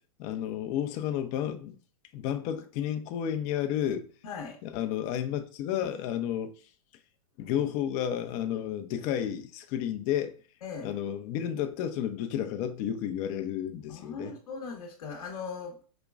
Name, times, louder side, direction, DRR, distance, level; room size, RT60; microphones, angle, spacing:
voice 1, 0.2-1.7 2.1-4.1 4.6-6.5 7.4-10.3 10.8-14.3, left 10 dB, 45° left, 0.6 m, -31 dB
voice 2, 4.2-4.6 10.6-10.9 13.9-15.8, left 5 dB, 70° left, 1.0 m, -39 dB
5.0 x 2.9 x 2.4 m
hypercardioid pair, 105°, 18 cm